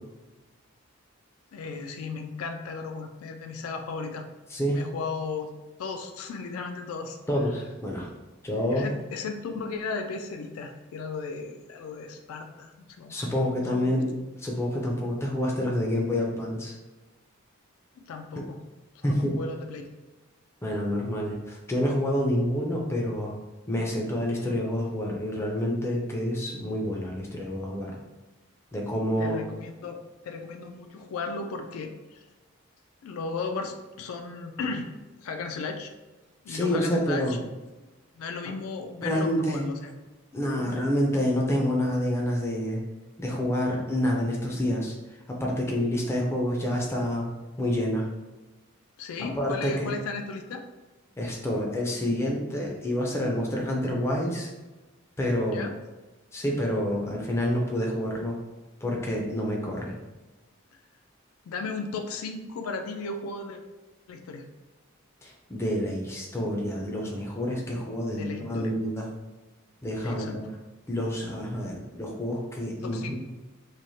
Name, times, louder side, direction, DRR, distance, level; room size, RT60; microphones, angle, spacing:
voice 1, 1.5-4.3 4.7-5.5 5.8-7.2 8.5-13.1 13.6-14.0 18.0-18.6 19.0-19.8 29.2-30.0 30.2-32.3 33.0-34.9 35.2-35.9 36.4-37.4 38.2-39.9 40.6-40.8 49.0-50.6 55.5-55.7 61.5-63.6 64.1-64.4 68.2-68.8 70.0-70.4 72.8-73.2, left 4 dB, 85° left, 6 dB, 0.3 m, -35 dB
voice 2, 4.5-4.9 7.3-8.1 8.4-8.9 13.1-14.1 14.4-16.7 19.0-19.4 20.6-23.4 23.7-27.9 28.7-29.4 36.5-37.4 39.0-39.7 40.3-42.8 43.2-44.9 45.3-47.3 47.6-48.1 49.2-49.9 51.2-54.5 55.2-55.7 56.3-58.4 58.8-60.0 65.2-69.1 69.8-70.4 70.9-73.2, equal, 10° left, -2 dB, 0.4 m, -28 dB
3.0 x 2.0 x 2.7 m, 1.1 s
head